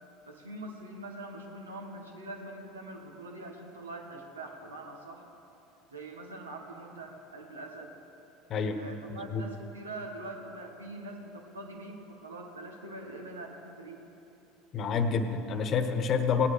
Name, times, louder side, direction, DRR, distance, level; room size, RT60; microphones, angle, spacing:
voice 1, 0.3-5.2 5.9-7.9 8.7-14.0, right 2 dB, 85° right, 3 dB, 1.5 m, -43 dB
voice 2, 14.7-16.5, left 5 dB, 45° left, 8 dB, 1.1 m, -28 dB
17.5 x 10.0 x 4.9 m, 2.9 s
hypercardioid pair, 75°, 0 cm